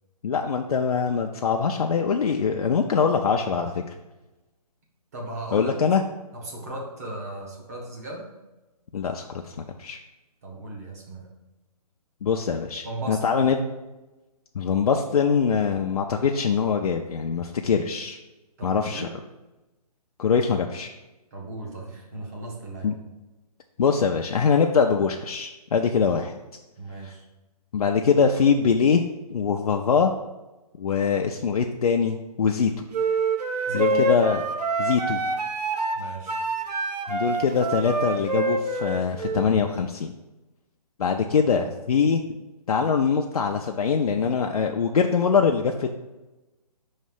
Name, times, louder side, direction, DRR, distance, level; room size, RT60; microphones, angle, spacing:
voice 1, 0.2-3.9 5.5-6.0 8.9-10.0 12.2-13.6 14.5-18.2 18.6-19.1 20.2-20.9 22.8-22.9 23.8-26.4 27.0-27.1 27.7-29.0 29.3-30.1 30.8-32.7 33.7-34.4 34.8-35.2 37.1-40.1 41.0-42.2 42.7-45.9, left 6 dB, 65° left, 3 dB, 0.5 m, -23 dB
voice 2, 5.1-5.8 6.3-8.3 10.4-11.3 12.8-13.2 18.6-19.1 21.3-23.0 26.8-27.2 33.7-34.0 35.9-36.4, right 1 dB, 25° right, -2 dB, 1.0 m, -36 dB
sound 1, 32.9-39.4, right 3 dB, 85° right, 0.8 m, -26 dB
5.7 x 3.2 x 5.4 m, 1.1 s
hypercardioid pair, 170°, 20 cm